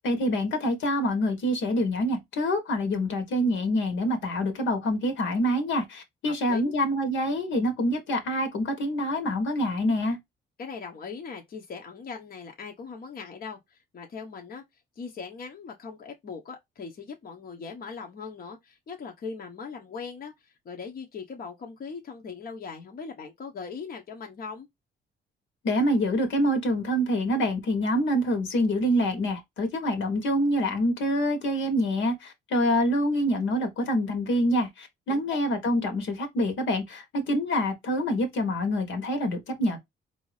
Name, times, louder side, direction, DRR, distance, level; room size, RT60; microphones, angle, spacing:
voice 1, 0.0-10.2 25.6-39.8, equal, 75° left, 1.4 m, -26 dB
voice 2, 6.2-6.7 10.6-14.6 15.0-24.7 35.1-35.2, left 5 dB, 50° left, 1.0 m, -40 dB
4.5 x 2.8 x 3.2 m
cardioid pair, 90°, 20 cm